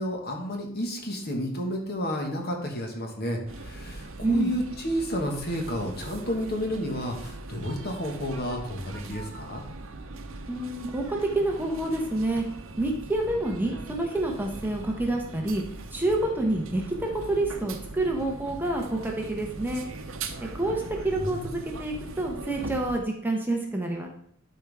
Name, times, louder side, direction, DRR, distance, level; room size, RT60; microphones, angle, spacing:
voice 1, 0.0-9.6 21.2-21.5, equal, 50° left, 2 dB, 1.6 m, -31 dB
sound 1, 3.5-23.0, right 2 dB, 70° right, 0.8 m, -40 dB
voice 2, 4.2-4.5 10.5-12.4 12.8-15.6 15.9-19.9 20.4-24.1, right 2 dB, 10° right, 1 dB, 0.9 m, -28 dB
12.0 x 4.6 x 3.5 m, 0.66 s
head